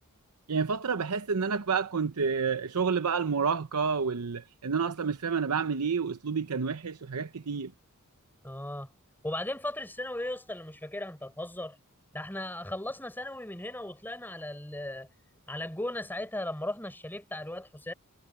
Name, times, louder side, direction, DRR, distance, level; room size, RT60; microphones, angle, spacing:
voice 1, 0.5-7.7, right 5 dB, 90° right, 0.8 m, -29 dB
voice 2, 8.4-8.9 9.2-11.8 12.1-15.1 15.5-17.9, left 1 dB, 10° left, 5.6 m, -37 dB
head